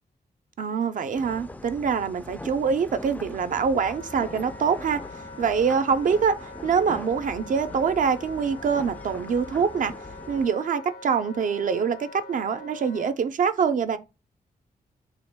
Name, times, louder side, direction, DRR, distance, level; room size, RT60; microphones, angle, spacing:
voice 1, 0.6-5.0 5.4-9.9 10.3-14.0, right 6 dB, 55° right, 0.4 m, -25 dB
sound 1, 1.1-10.5, left 2 dB, 10° left, 0.3 m, -41 dB
Wind instrument woodwind instrument, 3.8-13.2, left 3 dB, 80° left, 0.7 m, -44 dB
3.4 x 2.2 x 3.3 m
cardioid pair, 100°, 16 cm